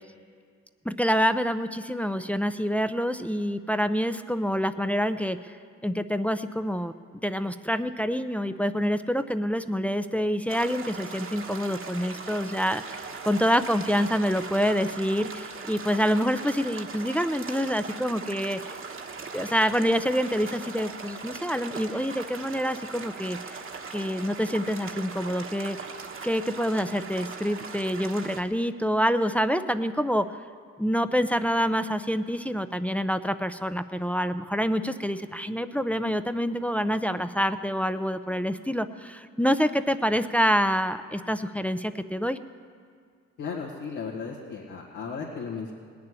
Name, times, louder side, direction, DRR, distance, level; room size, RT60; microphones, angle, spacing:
voice 1, 0.8-5.6 5.8-6.9 7.2-18.8 19.3-23.6 23.9-25.8 26.2-30.4 30.8-42.4, equal, 5° left, 10 dB, 0.5 m, -27 dB
sound 1, 10.5-28.4, right 4 dB, 45° right, 1.3 m, -39 dB
voice 2, 43.4-45.7, left 5 dB, 90° left, -5 dB, 1.9 m, -35 dB
18.5 x 6.9 x 9.7 m, 2.1 s
cardioid pair, 85°, 30 cm